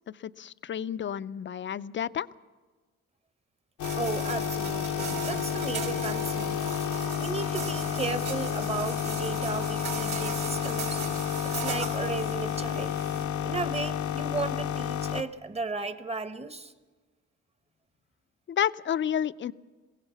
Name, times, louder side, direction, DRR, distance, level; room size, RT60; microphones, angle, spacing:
voice 1, 0.1-2.3 18.5-19.5, left 9 dB, 40° left, 14 dB, 0.6 m, -30 dB
sound 1, 3.8-15.2, left 9 dB, 75° left, 0.8 m, -31 dB
sound 2, 3.8-13.2, right 6 dB, 75° right, 4.7 m, -38 dB
voice 2, 4.0-6.7 7.2-11.0 11.4-13.0 13.4-16.7, right 4 dB, 20° right, 12 dB, 1.1 m, -35 dB
22.5 x 16.5 x 7.0 m, 1.3 s
cardioid pair, 90°, 30 cm